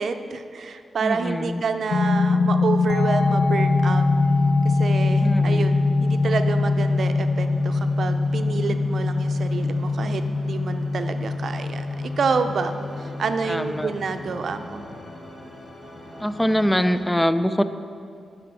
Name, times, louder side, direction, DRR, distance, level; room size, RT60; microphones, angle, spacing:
voice 1, 0.0-4.0 4.6-14.8, right 5 dB, 65° right, 8 dB, 0.6 m, -28 dB
voice 2, 1.0-1.6 5.2-5.7 13.4-13.9 16.2-17.6, equal, 10° left, 11 dB, 0.5 m, -23 dB
sound 1, 1.9-14.5, left 3 dB, 85° left, 0.5 m, -22 dB
sound 2, 2.7-17.0, left 1 dB, 40° left, 2.2 m, -44 dB
11.5 x 5.1 x 6.1 m, 2.3 s
cardioid pair, 65°, 0 cm